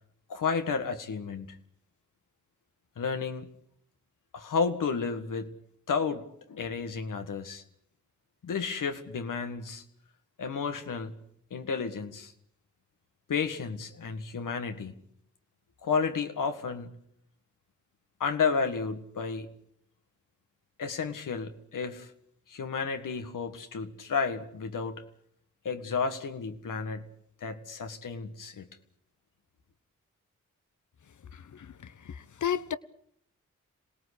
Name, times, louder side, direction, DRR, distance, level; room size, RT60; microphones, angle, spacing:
voice 1, 0.3-1.6 3.0-3.5 4.3-5.5 5.9-7.6 8.4-9.8 10.4-11.1 11.5-12.3 13.3-14.9 15.8-16.9 18.2-19.5 20.8-22.1 22.5-25.0 25.7-27.0 27.4-28.7, left 5 dB, 85° left, 1.8 m, -32 dB
voice 2, 31.5-32.7, left 9 dB, 70° left, 1.1 m, -33 dB
26.5 x 18.5 x 8.4 m
cardioid pair, 45°, 31 cm